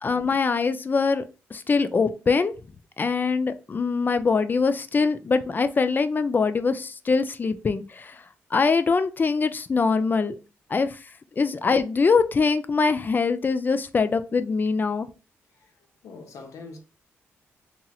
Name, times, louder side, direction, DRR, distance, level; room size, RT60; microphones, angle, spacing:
voice 1, 0.0-1.2 1.5-2.5 3.0-8.2 8.5-10.4 10.7-15.1, left 4 dB, 40° left, 0.3 m, -23 dB
voice 2, 16.0-16.8, left 4 dB, 75° left, 0.7 m, -42 dB
2.8 x 2.8 x 2.3 m
cardioid pair, 60°, 5 cm